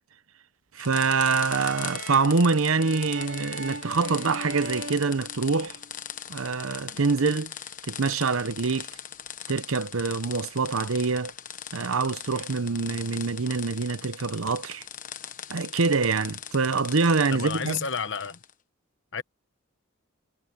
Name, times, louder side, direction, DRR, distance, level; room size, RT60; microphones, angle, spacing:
voice 1, 0.7-5.8 6.3-7.5 7.8-8.9 9.5-11.3 11.7-14.8 15.5-17.8, right 4 dB, 80° right, 0.8 m, -25 dB
sound 1, 0.8-18.5, left 9 dB, 40° left, 1.1 m, -40 dB
sound 2, 1.3-5.9, right 2 dB, 60° right, 3.7 m, -39 dB
voice 2, 17.3-18.4 19.1-19.2, left 5 dB, 60° left, 1.3 m, -31 dB
head